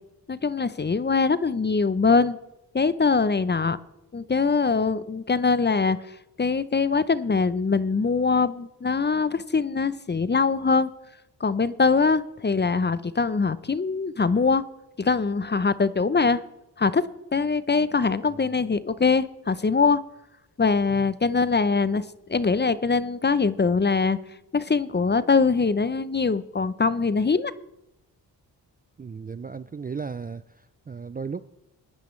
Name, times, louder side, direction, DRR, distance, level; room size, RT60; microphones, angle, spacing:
voice 1, 0.3-2.4 2.7-3.8 4.1-6.0 6.4-10.9 11.4-14.6 15.0-16.4 16.8-17.0 17.3-20.0 20.6-24.2 24.5-27.5, left 4 dB, 25° left, 16 dB, 0.6 m, -23 dB
voice 2, 29.0-31.4, right 5 dB, 20° right, 14 dB, 0.4 m, -36 dB
20.5 x 10.5 x 3.2 m, 0.90 s
cardioid pair, 50°, 43 cm